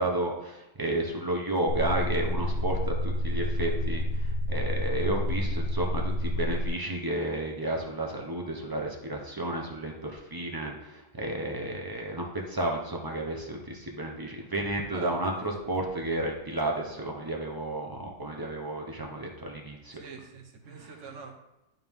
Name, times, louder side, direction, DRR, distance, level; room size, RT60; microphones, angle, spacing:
voice 1, 0.0-20.0 20.7-21.0, right 1 dB, 30° right, 0 dB, 0.4 m, -32 dB
sound 1, 1.7-6.7, left 1 dB, 80° left, 1.3 m, -29 dB
voice 2, 19.9-21.3, right 4 dB, 50° right, 1 dB, 1.3 m, -44 dB
11.0 x 3.8 x 3.6 m, 0.93 s
omnidirectional pair, 2.0 m